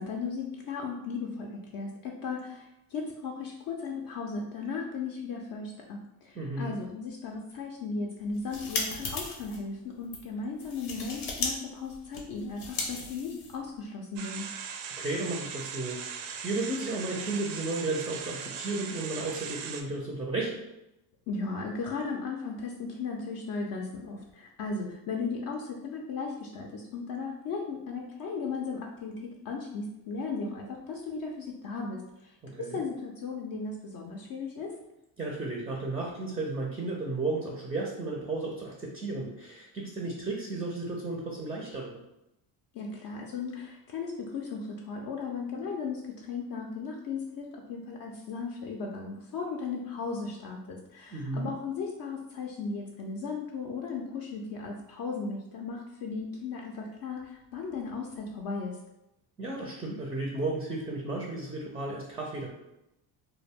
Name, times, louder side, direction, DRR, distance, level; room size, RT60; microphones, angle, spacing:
voice 1, 0.0-14.5 21.3-34.7 42.7-58.8, left 4 dB, 45° left, 0 dB, 0.5 m, -36 dB
voice 2, 6.3-6.7 15.0-20.6 32.4-32.8 35.2-42.0 51.1-51.5 59.4-62.5, right 2 dB, 10° right, -1 dB, 0.4 m, -34 dB
sound 1, 8.2-9.6 10.0-10.2 10.6-11.5 11.8-13.7, left 3 dB, 90° left, 0.7 m, -36 dB
sound 2, 14.2-19.8, right 6 dB, 70° right, 0.5 m, -39 dB
2.1 x 2.0 x 3.4 m, 0.89 s
supercardioid pair, 80°, 49 cm